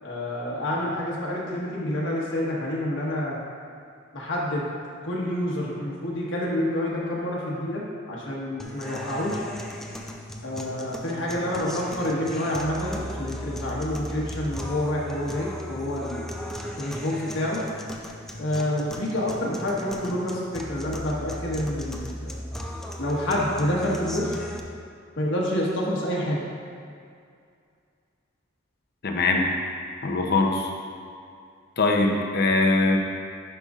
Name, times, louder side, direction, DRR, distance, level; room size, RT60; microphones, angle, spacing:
voice 1, 0.0-3.4 4.1-4.7 5.0-7.8 8.1-9.4 10.4-16.2 16.8-17.6 18.4-22.3 23.0-24.4 25.2-26.4, left 1 dB, 85° left, -4 dB, 1.3 m, -28 dB
sound 1, 8.6-24.6, equal, ahead, 0.4 m, -37 dB
voice 2, 29.0-29.4 30.0-30.7 31.8-33.0, left 3 dB, 55° left, 1 dB, 0.7 m, -22 dB
10.0 x 5.2 x 2.5 m, 2.3 s
head